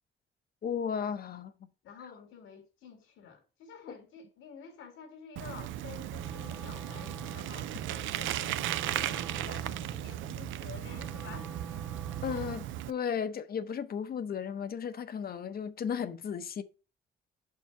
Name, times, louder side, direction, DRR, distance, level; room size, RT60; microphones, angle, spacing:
voice 1, 0.6-1.5 12.2-16.6, left 7 dB, 50° left, 0.7 m, -35 dB
voice 2, 1.8-11.5 12.2-12.6, left 7 dB, 85° left, 1.8 m, -50 dB
Bicycle, 5.4-12.9, right 13 dB, 80° right, 0.4 m, -36 dB
Wind instrument woodwind instrument, 6.1-12.8, right 2 dB, 10° right, 0.6 m, -47 dB
5.3 x 4.7 x 5.6 m
cardioid pair, 90°, 20 cm